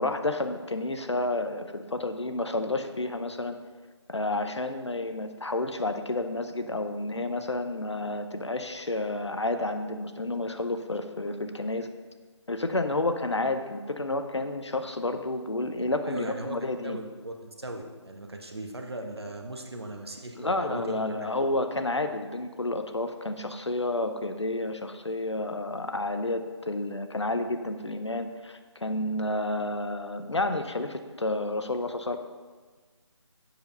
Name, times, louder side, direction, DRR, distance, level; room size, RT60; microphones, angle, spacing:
voice 1, 0.0-3.6 4.1-11.9 12.5-17.0 20.4-32.2, left 2 dB, 65° left, 8 dB, 0.8 m, -30 dB
voice 2, 16.1-16.6 16.8-21.3 21.7-22.0, right 1 dB, 55° right, 3 dB, 1.2 m, -39 dB
7.8 x 6.8 x 5.4 m, 1.4 s
figure-of-eight pair, 160°, 16 cm